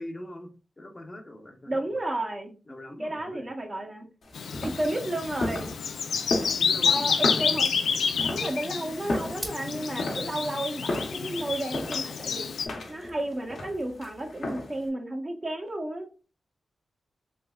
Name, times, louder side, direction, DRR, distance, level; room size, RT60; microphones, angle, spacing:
voice 1, 0.0-1.8 2.7-3.5 6.6-7.3, left 1 dB, 35° left, 4 dB, 0.7 m, -42 dB
voice 2, 1.7-2.6 3.0-4.1 4.6-5.7 6.8-7.7 8.2-12.5 12.9-16.1, right 1 dB, 35° right, 3 dB, 0.9 m, -32 dB
sound 1, 4.2-14.9, left 2 dB, 70° left, 0.9 m, -35 dB
Bird vocalization bird call bird song, 4.3-12.7, left 6 dB, 90° left, 0.3 m, -29 dB
sound 2, 6.4-13.2, equal, 10° right, 0.8 m, -49 dB
3.3 x 3.0 x 2.3 m, 0.33 s
cardioid pair, 55°, 0 cm